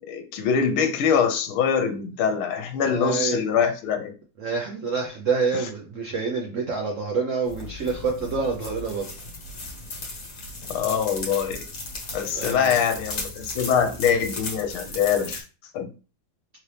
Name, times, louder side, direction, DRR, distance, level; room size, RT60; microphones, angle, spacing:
voice 1, 0.0-4.1 10.7-11.7 12.1-15.4 15.7-15.9, left 7 dB, 80° left, 7 dB, 1.5 m, -24 dB
voice 2, 2.8-3.4 4.4-9.1 12.3-12.8, right 4 dB, 80° right, 1 dB, 0.7 m, -27 dB
sound 1, 7.5-15.4, left 2 dB, 50° left, 1.6 m, -36 dB
3.9 x 2.9 x 3.3 m, 0.35 s
omnidirectional pair, 2.3 m